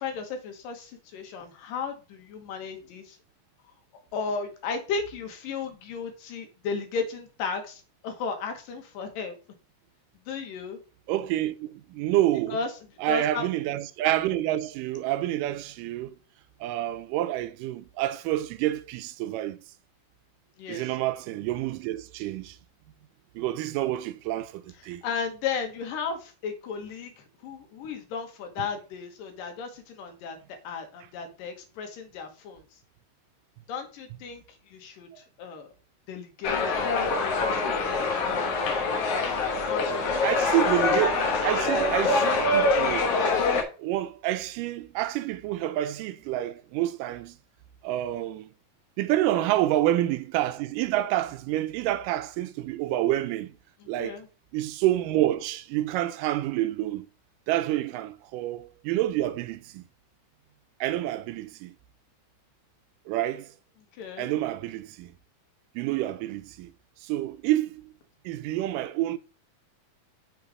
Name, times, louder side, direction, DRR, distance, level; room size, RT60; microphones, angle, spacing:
voice 1, 0.0-3.2 4.1-9.4 10.3-10.8 12.5-12.7 13.0-13.5 20.6-20.8 25.0-32.6 33.7-35.7 36.1-38.5 39.0-40.6 49.3-49.4 53.8-54.3 64.0-64.3, left 5 dB, 90° left, 2.9 m, -35 dB
voice 2, 11.1-12.6 13.0-16.2 16.6-19.6 20.7-22.6 23.4-25.0 28.6-28.7 35.1-35.2 40.2-43.1 43.8-47.4 47.8-48.5 49.0-53.6 53.9-54.2 54.5-57.1 57.5-59.8 60.8-61.8 63.1-63.5 64.2-65.1 65.8-66.7 67.0-67.9 68.3-69.2, right 14 dB, 85° right, 2.2 m, -28 dB
sound 1, 36.4-43.6, left 3 dB, 60° left, 1.8 m, -25 dB
6.9 x 3.9 x 4.7 m
omnidirectional pair, 3.8 m